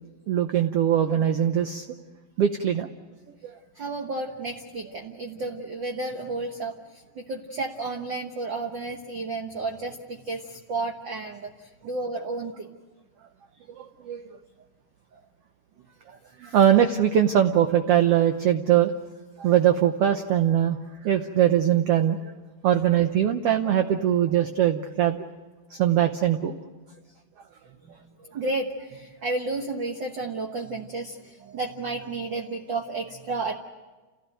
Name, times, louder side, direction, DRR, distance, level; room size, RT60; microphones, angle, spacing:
voice 1, 0.3-1.9 2.4-2.9 3.4-3.5 13.7-14.4 16.4-18.9 19.4-20.8 21.0-22.3 22.6-25.2 25.7-26.6, right 10 dB, 85° right, 7 dB, 1.3 m, -21 dB
voice 2, 3.7-12.7 15.1-15.2 16.5-16.6 27.6-33.6, right 3 dB, 55° right, 2 dB, 1.3 m, -32 dB
29.0 x 16.0 x 9.1 m, 1.3 s
omnidirectional pair, 3.9 m